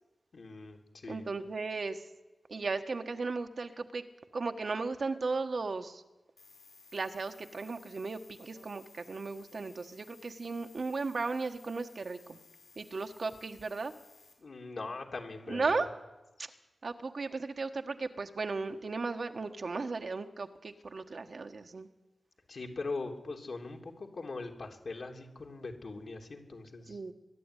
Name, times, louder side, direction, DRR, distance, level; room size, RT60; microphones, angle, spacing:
voice 1, 0.3-1.2 14.4-15.9 22.5-27.0, left 3 dB, 65° left, 2 dB, 3.0 m, -41 dB
voice 2, 1.1-2.0 2.5-4.0 4.3-6.0 6.9-12.4 12.8-13.9 15.5-15.9 16.8-21.9 26.9-27.1, right 3 dB, 55° right, 6 dB, 1.3 m, -36 dB
sound 1, 6.4-14.3, left 4 dB, 80° left, 5.7 m, -59 dB
22.5 x 11.5 x 9.9 m, 1.1 s
wide cardioid pair, 105°, 0 cm